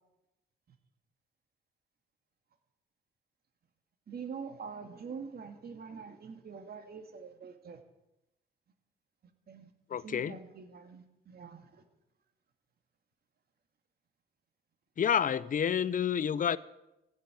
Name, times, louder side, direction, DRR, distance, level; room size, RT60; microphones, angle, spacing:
voice 1, 4.1-7.8 9.5-9.7 10.0-11.8, right 6 dB, 50° right, 2.3 m, -45 dB
voice 2, 9.9-10.4 15.0-16.6, left 8 dB, 45° left, 0.7 m, -29 dB
15.0 x 8.1 x 9.1 m
cardioid pair, 90°, 20 cm